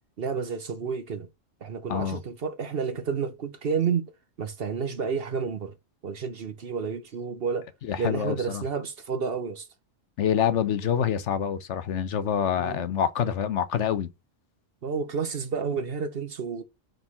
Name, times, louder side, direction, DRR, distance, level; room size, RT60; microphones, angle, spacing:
voice 1, 0.2-1.3 1.6-4.0 4.4-5.7 6.0-7.7 8.0-9.7 12.6-12.9 14.8-16.6, right 6 dB, 50° right, 0.9 m, -30 dB
voice 2, 1.9-2.2 7.8-8.6 10.2-14.1, left 8 dB, 65° left, 1.0 m, -26 dB
4.8 x 3.8 x 5.4 m
omnidirectional pair, 1.4 m